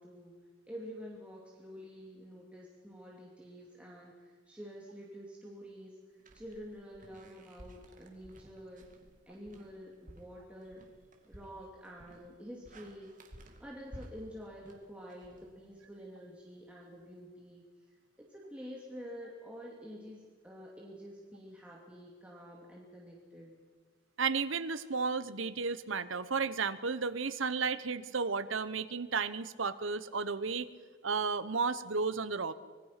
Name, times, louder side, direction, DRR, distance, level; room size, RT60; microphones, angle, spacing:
voice 1, 0.0-8.9 9.3-10.8 11.3-13.1 13.6-23.5, equal, 5° right, -3 dB, 2.6 m, -48 dB
sound 1, 6.2-16.1, right 1 dB, 40° right, 2.4 m, -55 dB
voice 2, 24.2-30.7 31.0-32.5, right 5 dB, 80° right, 13 dB, 1.0 m, -33 dB
25.5 x 20.0 x 5.9 m, 1.5 s
head